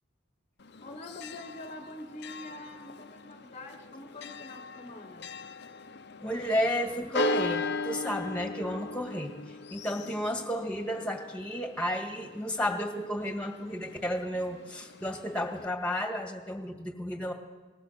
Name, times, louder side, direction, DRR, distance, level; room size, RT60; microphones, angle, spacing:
Church bell, 0.6-15.7, left 2 dB, 60° left, 0.8 m, -39 dB
voice 1, 0.8-5.3, left 1 dB, 35° left, 4 dB, 1.2 m, -45 dB
voice 2, 6.2-17.3, equal, 5° left, 4 dB, 2.0 m, -32 dB
21.0 x 18.5 x 6.7 m, 1.2 s
head